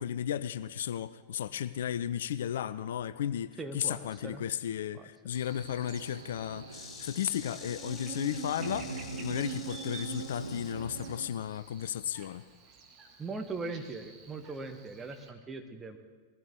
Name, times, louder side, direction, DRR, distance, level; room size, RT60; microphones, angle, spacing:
voice 1, 0.0-12.4, left 10 dB, 60° left, 15 dB, 0.4 m, -34 dB
voice 2, 3.6-4.5 4.9-5.1 13.2-16.0, right 3 dB, 15° right, 6 dB, 1.3 m, -40 dB
Buzz, 5.3-15.3, right 8 dB, 35° right, 2.2 m, -46 dB
sound 1, 5.5-11.3, right 1 dB, 85° right, 0.7 m, -45 dB
Insect, 6.7-11.7, left 5 dB, 25° left, 1.2 m, -50 dB
21.0 x 15.5 x 3.7 m, 1.4 s
figure-of-eight pair, 90°, 0 cm